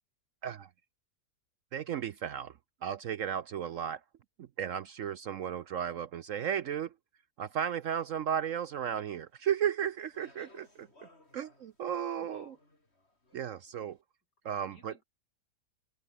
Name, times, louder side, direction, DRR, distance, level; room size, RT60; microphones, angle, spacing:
voice 1, 1.7-4.0 4.4-6.9 7.4-12.5 13.3-14.0 14.4-14.9, right 9 dB, 65° right, 0.9 m, -35 dB
Speech, 9.4-13.8, left 2 dB, 35° left, 5.4 m, -62 dB
voice 2, 12.2-12.6 14.4-15.0, left 2 dB, 75° left, 7.0 m, -57 dB
open air
omnidirectional pair, 1.8 m